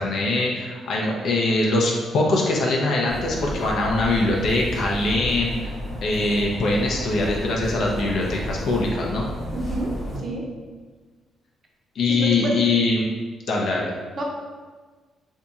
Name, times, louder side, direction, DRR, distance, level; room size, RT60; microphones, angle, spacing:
voice 1, 0.0-5.7 6.0-9.3 11.9-13.1 13.5-13.9, left 2 dB, 70° left, -2 dB, 0.5 m, -22 dB
sound 1, 1.7-7.2 8.2-8.3 9.1-9.3, right 2 dB, 70° right, 1.0 m, -45 dB
sound 2, 3.1-10.2, left 1 dB, 25° left, 1.1 m, -32 dB
voice 2, 9.5-10.5 12.1-12.6 14.1-14.2, right 1 dB, 45° right, 0 dB, 0.7 m, -29 dB
2.7 x 2.3 x 4.0 m, 1.4 s
cardioid pair, 90°, 0 cm